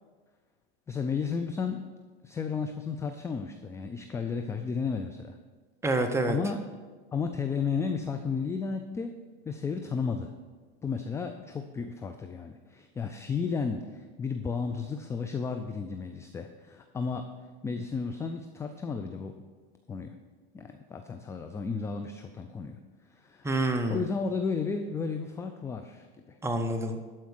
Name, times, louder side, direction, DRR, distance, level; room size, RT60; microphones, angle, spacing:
voice 1, 0.9-1.8 2.2-5.4 6.3-6.7 7.1-10.3 10.8-17.3 17.6-19.4 19.9-20.1 20.5-22.8 23.1-26.4, left 5 dB, 10° left, 6 dB, 0.3 m, -33 dB
voice 2, 5.8-6.4 23.4-24.0 26.4-27.0, right 2 dB, 10° right, 6 dB, 0.8 m, -27 dB
12.0 x 4.6 x 6.3 m, 1.4 s
hypercardioid pair, 115°, 31 cm